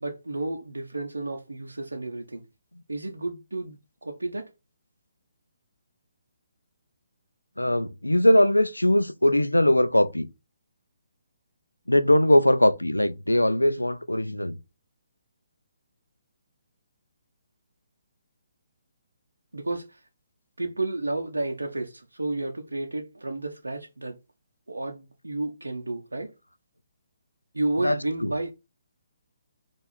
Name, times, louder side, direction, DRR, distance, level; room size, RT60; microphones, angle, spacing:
voice 1, 0.0-2.4 2.9-4.5 19.5-20.0 20.6-24.2 24.7-26.3 27.5-28.5, right 2 dB, 80° right, 0.6 m, -31 dB
voice 2, 7.6-10.3 11.9-14.6 27.8-28.3, left 1 dB, 90° left, 0.4 m, -21 dB
4.5 x 2.4 x 4.1 m
figure-of-eight pair, 140°, 0 cm